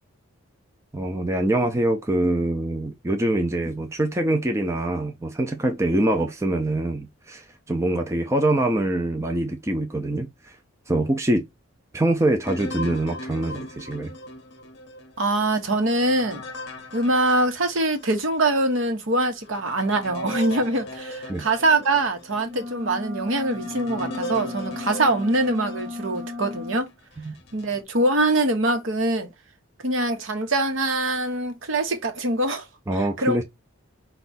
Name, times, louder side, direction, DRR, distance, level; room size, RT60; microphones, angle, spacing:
voice 1, 0.9-10.5 10.9-11.4 11.9-14.1 21.3-21.4 27.2-27.3 32.9-33.4, right 1 dB, 15° right, 0.4 m, -24 dB
sound 1, 12.5-18.2 18.7-18.8 19.4-26.6 27.2-27.8, left 1 dB, 55° left, 0.7 m, -38 dB
voice 2, 15.2-16.4 16.9-26.9 27.5-29.3 29.8-32.7 32.9-33.4, right 2 dB, 70° right, 0.9 m, -23 dB
sound 2, 22.4-26.9, left 3 dB, 40° right, 1.0 m, -35 dB
4.6 x 2.3 x 3.9 m
head